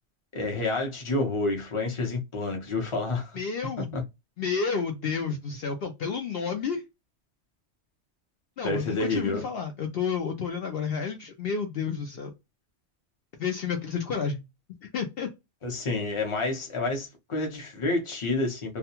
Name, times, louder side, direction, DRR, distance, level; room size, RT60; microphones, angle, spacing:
voice 1, 0.3-3.4 3.9-4.0 8.6-9.4 15.6-18.8, left 2 dB, 30° left, 0.8 m, -29 dB
voice 2, 3.3-4.0 4.4-6.8 8.6-12.3 13.4-14.4 14.8-15.3, left 6 dB, 65° left, 0.7 m, -30 dB
2.4 x 2.2 x 2.8 m
omnidirectional pair, 1.2 m